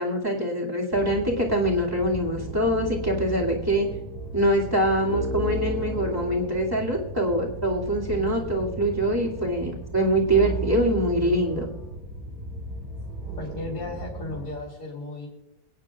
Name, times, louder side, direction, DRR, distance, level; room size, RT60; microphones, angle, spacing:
voice 1, 0.0-3.9 4.3-11.7, right 1 dB, 15° right, -3 dB, 2.3 m, -24 dB
sound 1, 0.9-14.5, right 1 dB, 30° right, 2.1 m, -35 dB
voice 2, 13.4-15.3, left 3 dB, 65° left, -6 dB, 3.4 m, -35 dB
25.0 x 9.6 x 2.4 m, 0.93 s
omnidirectional pair, 1.6 m